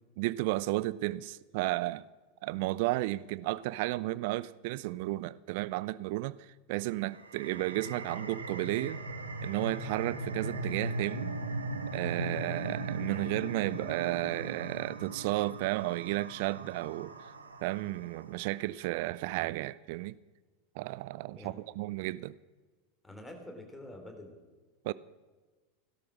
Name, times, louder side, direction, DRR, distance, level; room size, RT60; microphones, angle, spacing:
voice 1, 0.2-2.0 2.4-9.0 9.4-11.4 11.9-17.1 17.6-20.2 20.8-22.3 24.9-25.0, right 18 dB, 50° right, 0.4 m, -33 dB
sound 1, 7.1-18.3, right 2 dB, 80° right, 1.3 m, -39 dB
voice 2, 23.0-24.4, left 1 dB, 5° left, 3.3 m, -47 dB
16.5 x 12.5 x 6.1 m
figure-of-eight pair, 85°, 0 cm